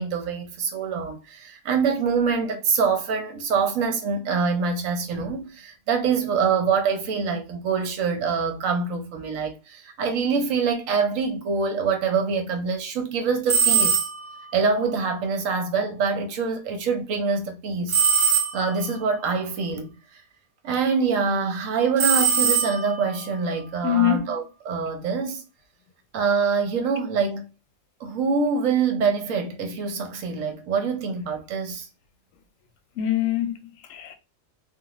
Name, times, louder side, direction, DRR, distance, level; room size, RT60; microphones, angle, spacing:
voice 1, 0.0-14.0 14.5-18.0 18.5-19.9 20.6-25.4 26.1-27.4 28.0-31.9, right 5 dB, 70° right, 1.1 m, -25 dB
sound 1, 13.5-14.4 17.9-18.9 22.0-23.1, right 6 dB, 45° right, 0.9 m, -21 dB
voice 2, 23.8-24.3 33.0-34.2, left 11 dB, 75° left, 0.9 m, -24 dB
2.5 x 2.4 x 2.9 m
omnidirectional pair, 1.5 m